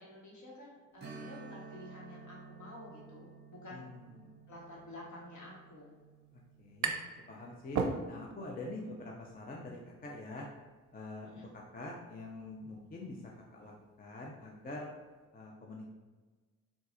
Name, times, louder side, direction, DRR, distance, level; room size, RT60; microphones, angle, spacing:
voice 1, 0.0-3.9 4.5-5.9 11.2-11.5, left 1 dB, 55° left, -4 dB, 1.4 m, -50 dB
Strum, 1.0-10.2 10.5-10.6 13.2-13.3 13.8-13.9, right 4 dB, 30° right, 0.8 m, -54 dB
voice 2, 3.7-4.4 6.3-6.9 7.3-7.8 8.1-10.5 10.9-13.2 13.5-13.7 14.0-14.9 15.3-15.9, left 2 dB, 25° left, -1 dB, 0.5 m, -45 dB
sound 1, 6.0-7.2 7.5-8.5, right 5 dB, 55° right, 0.5 m, -35 dB
3.9 x 2.4 x 2.6 m, 1.4 s
supercardioid pair, 45°, 35 cm